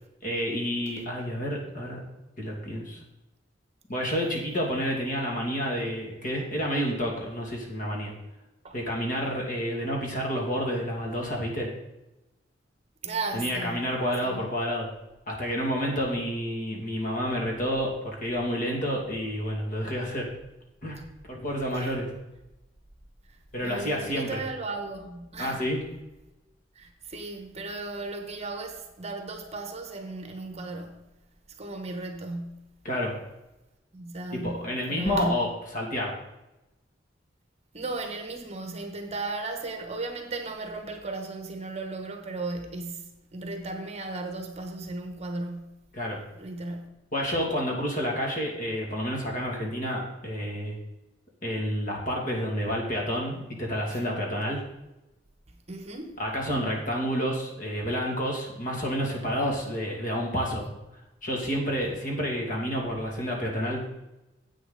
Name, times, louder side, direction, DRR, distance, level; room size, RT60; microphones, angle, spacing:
voice 1, 0.2-2.0 2.4-3.0 3.9-8.1 8.7-11.7 13.3-14.9 15.3-20.3 20.8-21.0 21.3-22.1 23.5-24.4 25.4-25.8 32.8-33.1 34.3-35.5 35.7-36.1 45.9-46.2 47.1-50.8 51.4-54.6 56.2-60.6 61.2-63.8, equal, 45° left, 2.5 m, -29 dB
voice 2, 13.0-13.9 14.2-14.5 21.7-22.0 23.3-25.7 26.7-31.1 31.6-32.8 33.9-35.5 37.7-45.9 46.3-46.9 53.9-54.0 55.7-56.2, right 2 dB, 35° right, 1.2 m, -36 dB
10.0 x 8.2 x 4.0 m
head